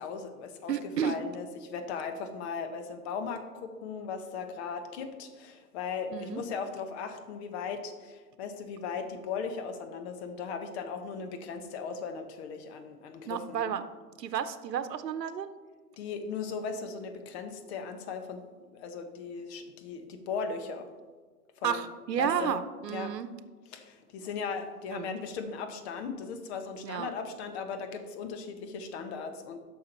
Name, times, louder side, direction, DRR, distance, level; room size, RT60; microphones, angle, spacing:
voice 1, 0.0-13.7 16.0-18.4 18.7-20.9 21.6-21.9 22.2-22.5 22.9-23.1 23.7-29.6, left 5 dB, 40° left, 7 dB, 1.3 m, -37 dB
voice 2, 0.7-1.2 6.1-6.4 13.3-13.8 14.2-15.5 21.6-23.3 24.9-25.1 26.8-27.1, right 8 dB, 85° right, 11 dB, 0.9 m, -32 dB
11.0 x 6.3 x 4.4 m, 1.4 s
hypercardioid pair, 130°, 48 cm